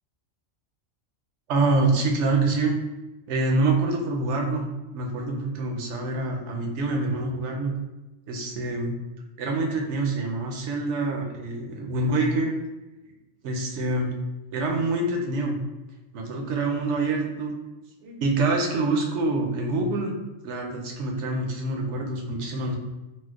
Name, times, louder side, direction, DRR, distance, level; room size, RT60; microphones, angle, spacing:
voice 1, 1.5-2.8 3.3-4.7 4.9-7.7 8.3-8.9 9.4-12.5 13.4-14.1 14.5-15.6 16.1-17.6 18.0-20.2 20.4-22.7, right 2 dB, 65° right, 1 dB, 0.8 m, -26 dB
4.3 x 2.0 x 2.3 m, 1.1 s
omnidirectional pair, 1.4 m